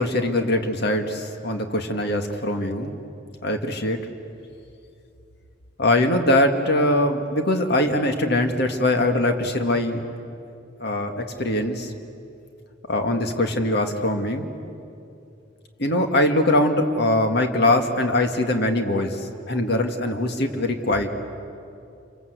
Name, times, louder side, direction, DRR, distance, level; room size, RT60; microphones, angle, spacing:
voice 1, 0.0-2.9 3.4-4.0 5.8-10.0 10.8-11.9 12.9-14.5 15.8-19.2 19.5-21.1, left 1 dB, 60° left, 5 dB, 2.0 m, -22 dB
27.5 x 25.5 x 8.2 m, 2.6 s
head